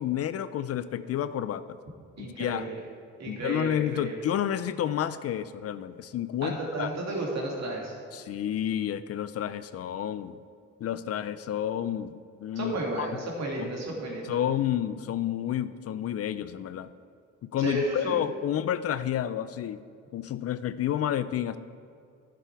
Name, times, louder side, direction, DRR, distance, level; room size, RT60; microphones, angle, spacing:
voice 1, 0.0-1.6 2.2-2.7 3.3-6.9 8.1-10.4 10.8-13.2 13.6-13.7 14.3-16.9 17.5-19.8 20.1-21.6, left 10 dB, 55° left, 14 dB, 0.4 m, -30 dB
voice 2, 2.2-2.8 3.2-4.2 6.4-8.0 12.6-14.4 17.6-18.2, right 1 dB, 60° right, -1 dB, 2.4 m, -33 dB
11.0 x 7.1 x 4.6 m, 2.3 s
cardioid pair, 90°, 30 cm